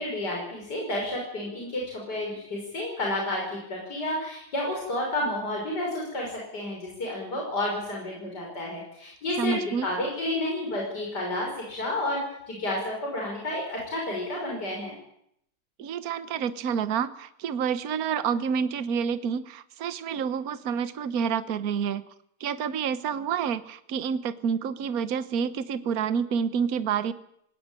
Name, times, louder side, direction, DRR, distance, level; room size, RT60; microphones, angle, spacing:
voice 1, 0.0-14.9, left 1 dB, 65° left, -2 dB, 6.5 m, -31 dB
voice 2, 9.4-9.9 15.8-22.0 22.4-27.1, right 7 dB, 60° right, 13 dB, 1.4 m, -28 dB
21.5 x 18.5 x 8.9 m, 0.75 s
omnidirectional pair, 1.9 m